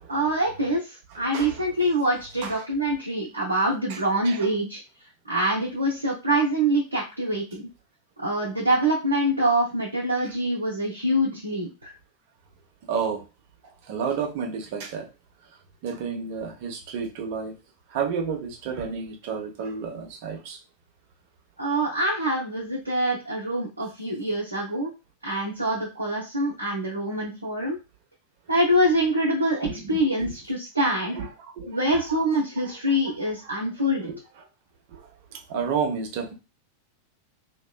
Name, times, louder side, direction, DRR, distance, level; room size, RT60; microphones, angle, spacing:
voice 1, 0.1-4.8 5.3-7.7 8.2-11.9 21.6-24.9 25.2-27.8 28.5-31.2 31.7-34.1, right 1 dB, 80° right, 0.7 m, -25 dB
voice 2, 1.1-1.7 2.4-2.6 3.9-4.0 4.2-4.5 12.9-13.2 13.9-15.1 15.8-17.5 17.9-20.6 29.6-30.3 31.2-32.2 32.6-32.7 33.4-33.6 34.1-34.2 34.9-35.0 35.5-36.3, right 6 dB, 45° right, 0.8 m, -31 dB
3.0 x 2.9 x 2.2 m
figure-of-eight pair, 90°, 0 cm